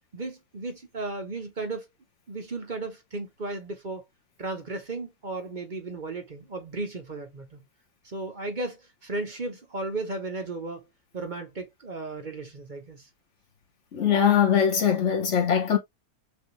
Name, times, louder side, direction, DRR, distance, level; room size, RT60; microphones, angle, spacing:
voice 1, 0.1-1.9 2.3-4.0 4.4-7.6 8.0-10.9 11.1-13.1, right 2 dB, 40° right, 0.8 m, -35 dB
voice 2, 13.9-15.8, left 8 dB, 50° left, 1.2 m, -21 dB
6.4 x 2.7 x 3.1 m
omnidirectional pair, 1.8 m